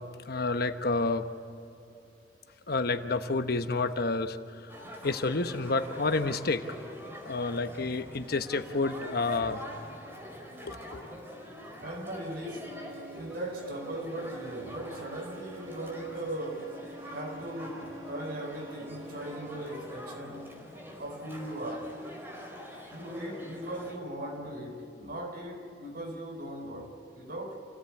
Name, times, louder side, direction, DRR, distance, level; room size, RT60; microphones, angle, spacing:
voice 1, 0.3-1.3 2.7-4.4 5.0-6.6 7.3-9.6 10.6-11.1, left 3 dB, 60° left, 1.1 m, -29 dB
sound 1, 4.7-24.0, equal, 15° right, 4.5 m, -45 dB
voice 2, 11.8-12.9 13.2-16.8 17.1-20.6 21.0-22.0 22.9-27.6, right 1 dB, 60° right, 3.9 m, -39 dB
sound 2, 12.5-19.7, right 2 dB, 90° right, 7.2 m, -48 dB
28.0 x 17.0 x 8.6 m
head